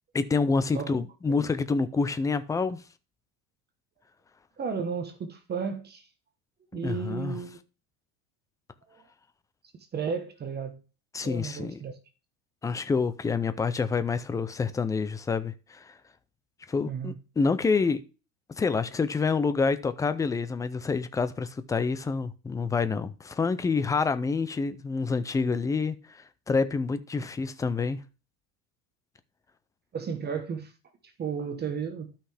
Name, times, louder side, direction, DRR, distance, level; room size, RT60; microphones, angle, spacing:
voice 1, 0.1-2.8 6.8-7.4 11.1-11.8 12.6-15.9 16.7-18.0 18.6-28.0, left 4 dB, 10° left, 0.3 m, -27 dB
voice 2, 0.7-1.4 4.6-6.1 6.7-7.6 8.9-9.0 9.9-10.8 11.2-12.0 16.8-17.2 27.2-27.3 29.9-30.7 31.0-32.1, right 6 dB, 25° right, 1.1 m, -34 dB
12.5 x 5.8 x 3.3 m
cardioid pair, 155°, 41 cm